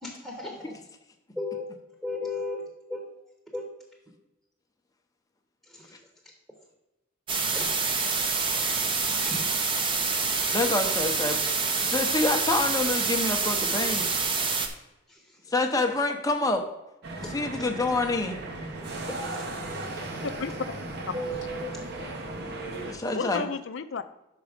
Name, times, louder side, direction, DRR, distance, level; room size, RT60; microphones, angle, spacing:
voice 1, 0.0-0.7 1.3-1.7 2.0-3.1 3.5-3.7 5.6-6.0 7.5-7.7 8.5-9.8 15.1-15.5 17.2-17.7 18.9-19.8, left 2 dB, ahead, -1 dB, 1.0 m, -37 dB
sound 1, 7.3-14.7, right 4 dB, 25° right, 0.6 m, -27 dB
voice 2, 10.5-11.4 11.9-14.1 14.5-14.6 15.5-16.7 17.3-18.4 22.9-23.5, left 2 dB, 15° left, 4 dB, 0.7 m, -27 dB
sound 2, 17.0-22.9, right 2 dB, 55° right, 1.0 m, -35 dB
voice 3, 20.2-20.8 21.1-21.5 23.1-24.0, left 5 dB, 65° left, 11 dB, 0.5 m, -33 dB
6.1 x 5.4 x 5.0 m, 0.96 s
head